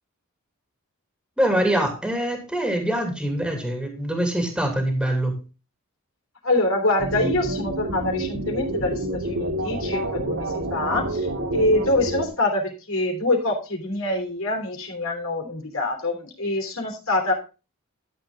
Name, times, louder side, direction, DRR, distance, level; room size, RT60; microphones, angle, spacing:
voice 1, 1.4-5.3 10.9-11.0, right 1 dB, 5° right, 3 dB, 2.6 m, -24 dB
voice 2, 6.4-17.3, left 2 dB, 65° left, 3 dB, 3.3 m, -25 dB
sound 1, 7.0-12.3, right 1 dB, 65° right, 2.8 m, -28 dB
12.5 x 7.7 x 3.7 m, 0.31 s
head